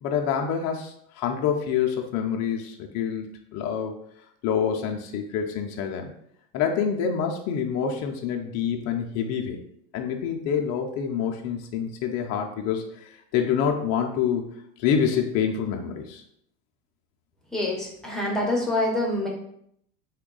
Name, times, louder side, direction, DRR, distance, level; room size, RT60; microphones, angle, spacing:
voice 1, 0.0-3.3 3.5-3.9 4.4-6.1 6.5-9.6 9.9-14.5 14.8-16.2, left 7 dB, 35° left, 2 dB, 0.4 m, -27 dB
voice 2, 17.5-19.3, left 1 dB, ahead, -3 dB, 0.7 m, -26 dB
3.5 x 2.2 x 3.8 m, 0.71 s
supercardioid pair, 120°, 45 cm